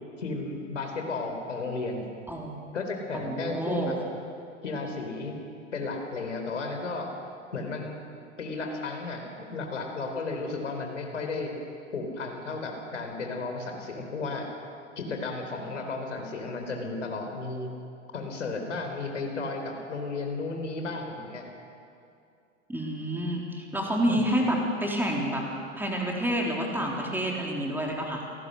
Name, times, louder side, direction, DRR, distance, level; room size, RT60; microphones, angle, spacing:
voice 1, 0.2-2.0 2.7-4.0 4.6-5.4 5.7-7.1 7.5-8.0 8.4-11.5 11.9-14.5 15.0-17.7 18.1-21.4 24.1-24.2, left 3 dB, 70° left, 3 dB, 4.1 m, -33 dB
voice 2, 2.3-2.6 3.1-3.9 22.7-25.4 25.8-28.2, equal, 5° right, -1 dB, 3.9 m, -28 dB
29.0 x 19.0 x 6.5 m, 2.5 s
figure-of-eight pair, 90°, 37 cm